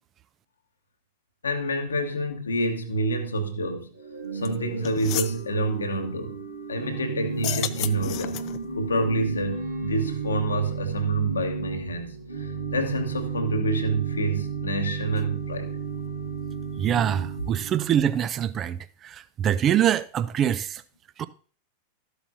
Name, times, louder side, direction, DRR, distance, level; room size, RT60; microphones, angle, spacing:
voice 1, 1.4-3.9 4.3-6.4 6.7-8.4 8.7-15.7, right 1 dB, 75° left, 1.2 m, -27 dB
Organ / Church bell, 3.9-18.1, right 5 dB, 70° right, 2.0 m, -33 dB
sound 1, 4.4-4.5 4.8-5.4 7.3-8.7, left 15 dB, 40° left, 0.4 m, -31 dB
voice 2, 16.8-20.8 21.2-21.3, right 10 dB, 30° right, 0.5 m, -24 dB
12.5 x 8.0 x 2.7 m
figure-of-eight pair, 90°, 0 cm